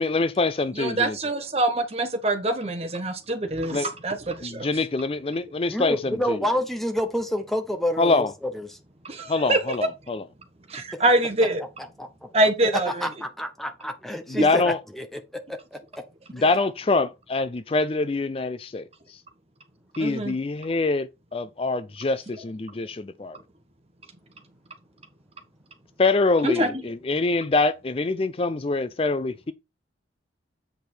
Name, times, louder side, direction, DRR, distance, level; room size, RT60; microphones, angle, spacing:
voice 1, 0.0-1.2 3.7-3.9 4.4-6.4 8.0-8.3 9.3-10.2 14.3-14.8 16.3-19.2 20.0-23.4 26.0-29.5, left 3 dB, 30° left, 0.4 m, -25 dB
voice 2, 0.7-4.7 9.0-9.8 10.7-11.6 12.3-13.1 20.0-20.4 20.6-20.8 26.4-26.8, right 2 dB, 35° right, 1.3 m, -25 dB
voice 3, 5.7-8.3 8.5-8.8 12.0-12.1 13.0-15.2 15.5-16.0 16.4-16.5 26.6-26.8, equal, ahead, 0.8 m, -29 dB
8.1 x 5.2 x 4.4 m
head